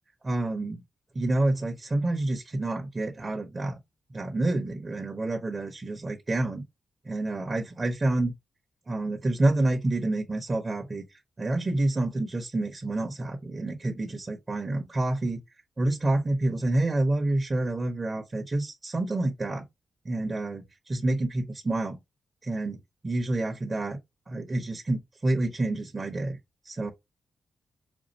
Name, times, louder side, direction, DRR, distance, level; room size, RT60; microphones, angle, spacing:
voice 1, 0.2-0.8 1.1-3.8 4.1-6.6 7.0-8.3 8.9-15.4 15.8-19.6 20.0-22.0 22.4-24.0 24.3-26.4 26.6-26.9, right 2 dB, 30° right, 0.9 m, -28 dB
5.2 x 2.4 x 2.8 m
cardioid pair, 90°, 0 cm